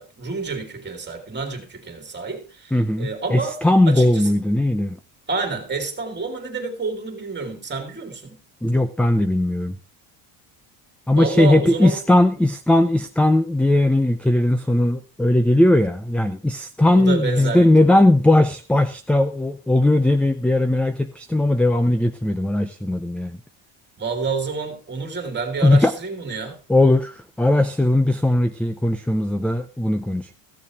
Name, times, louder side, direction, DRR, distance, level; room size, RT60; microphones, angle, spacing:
voice 1, 0.0-3.6 3.9-4.3 5.3-8.4 11.1-12.0 16.9-18.0 24.0-26.6, right 4 dB, 20° right, 2.7 m, -29 dB
voice 2, 2.7-5.0 8.6-9.8 11.1-23.4 25.6-25.9 26.7-30.3, left 1 dB, 5° left, 0.4 m, -18 dB
15.0 x 7.0 x 4.7 m
cardioid pair, 145°, 48 cm